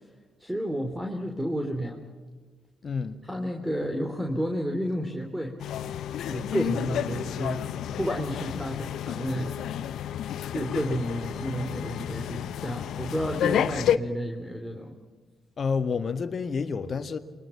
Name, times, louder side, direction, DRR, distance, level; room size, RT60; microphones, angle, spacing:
voice 1, 0.4-2.0 3.3-5.6 6.3-7.7 8.0-9.6 10.5-14.9, equal, 10° right, 3.4 m, -31 dB
voice 2, 2.8-3.2 15.6-17.2, left 5 dB, 50° left, 1.7 m, -29 dB
sound 1, 5.6-14.0, left 10 dB, 70° left, 0.8 m, -30 dB
29.0 x 23.0 x 5.9 m
hypercardioid pair, 45°, 0 cm